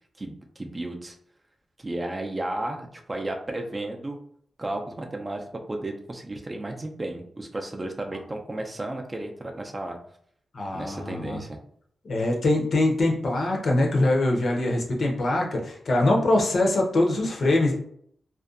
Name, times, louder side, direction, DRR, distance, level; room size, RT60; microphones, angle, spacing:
voice 1, 0.2-1.2 1.8-4.2 4.6-10.0 10.7-11.6, right 1 dB, 25° right, 2 dB, 0.4 m, -33 dB
voice 2, 10.5-11.4 12.0-17.8, left 2 dB, 60° left, 0 dB, 0.6 m, -23 dB
2.5 x 2.2 x 2.4 m, 0.65 s
wide cardioid pair, 95°, 0 cm